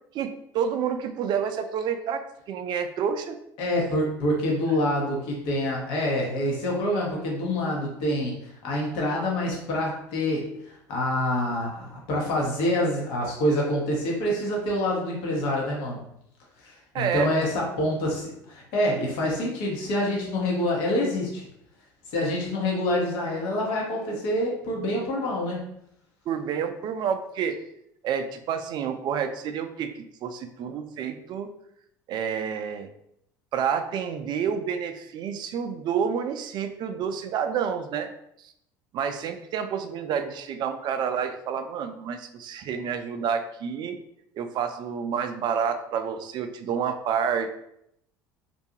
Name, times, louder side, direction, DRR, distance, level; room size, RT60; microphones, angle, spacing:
voice 1, 0.1-3.4 16.9-17.3 26.3-27.6 28.0-31.5 32.1-32.9 33.5-38.1 38.9-44.0 44.4-47.6, right 7 dB, 45° right, 8 dB, 0.4 m, -29 dB
voice 2, 3.6-16.0 16.6-21.4 22.1-25.7, left 1 dB, 65° left, -2 dB, 0.9 m, -26 dB
2.5 x 2.3 x 2.7 m, 0.75 s
hypercardioid pair, 75°, 10 cm